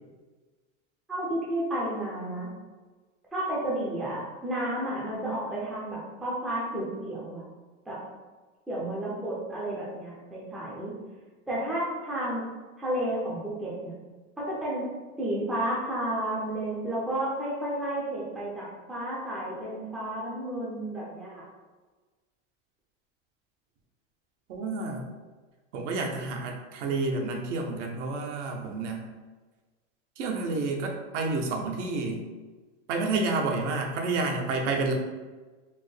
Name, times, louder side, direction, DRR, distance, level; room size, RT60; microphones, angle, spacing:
voice 1, 1.1-2.5 3.3-7.4 7.9-8.0 8.7-10.9 11.5-12.5 12.8-13.9 14.4-14.9 15.2-21.5, right 1 dB, ahead, -7 dB, 0.3 m, -32 dB
voice 2, 24.5-25.1 25.7-29.1 30.2-32.3 32.9-34.9, right 3 dB, 75° right, 1 dB, 0.8 m, -29 dB
4.3 x 2.1 x 3.2 m, 1.3 s
supercardioid pair, 150°, 36 cm